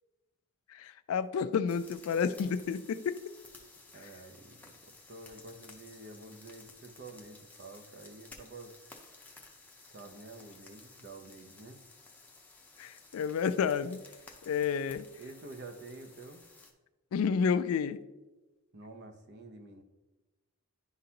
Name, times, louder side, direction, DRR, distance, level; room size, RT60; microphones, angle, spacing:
voice 1, 0.7-3.2 12.8-14.0 14.5-15.1 17.1-18.0, left 6 dB, 70° left, 0.3 m, -30 dB
sound 1, 1.7-16.7, left 3 dB, 5° left, 0.6 m, -55 dB
voice 2, 3.9-8.7 9.9-11.8 15.2-16.4 18.7-19.8, right 2 dB, 50° right, 0.7 m, -49 dB
11.0 x 3.9 x 2.8 m
head